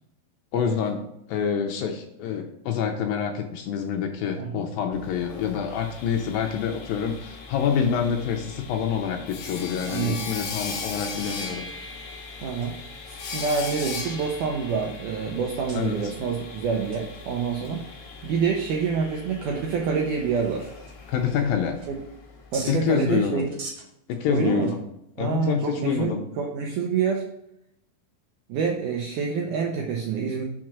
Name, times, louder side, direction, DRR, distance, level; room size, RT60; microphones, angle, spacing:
voice 1, 0.5-1.0 1.3-11.7 15.7-16.0 21.1-21.8 22.7-23.5 24.1-24.8 25.2-26.2, left 7 dB, 80° left, 4 dB, 2.2 m, -26 dB
Sawing, 4.9-22.7, left 4 dB, 65° left, 2.8 m, -39 dB
sound 1, 8.0-8.5 9.3-9.4 9.8-10.3 10.8-10.9 11.3-12.8 13.3-15.1 15.7-15.8 16.9-17.2 17.6-17.7 18.3-18.4 18.9-19.0 19.7-19.8 20.1-20.9 21.3-22.2 22.5-22.8 23.4-25.1, right 3 dB, 50° right, 2.2 m, -45 dB
voice 2, 9.9-10.3 12.4-12.8 13.1-17.9 18.2-20.7 22.5-23.5 24.3-24.8 25.2-27.2 28.5-30.4, right 6 dB, 80° right, 1 dB, 1.8 m, -27 dB
6.0 x 4.6 x 6.1 m, 0.79 s
omnidirectional pair, 4.5 m